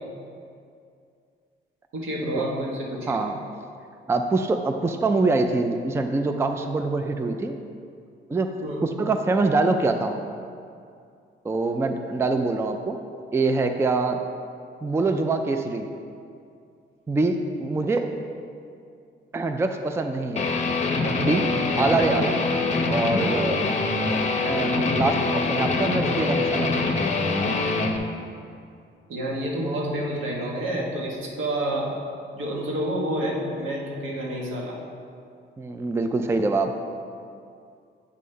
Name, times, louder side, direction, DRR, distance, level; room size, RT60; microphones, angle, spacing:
voice 1, 1.9-3.2 8.6-8.8 29.1-31.9 32.3-34.8, right 1 dB, 80° right, -2 dB, 1.4 m, -29 dB
voice 2, 3.1-3.4 4.1-7.6 8.3-8.5 8.8-10.1 11.4-13.0 13.3-14.2 14.8-15.8 17.1-18.1 19.3-20.5 21.2-21.5 21.8-22.4 22.8-23.6 24.4-26.7 35.6-36.7, right 3 dB, 15° right, 6 dB, 0.4 m, -24 dB
Guitar, 20.4-28.0, left 3 dB, 35° left, 0.7 m, -24 dB
8.4 x 3.3 x 5.4 m, 2.4 s
cardioid pair, 90°, 20 cm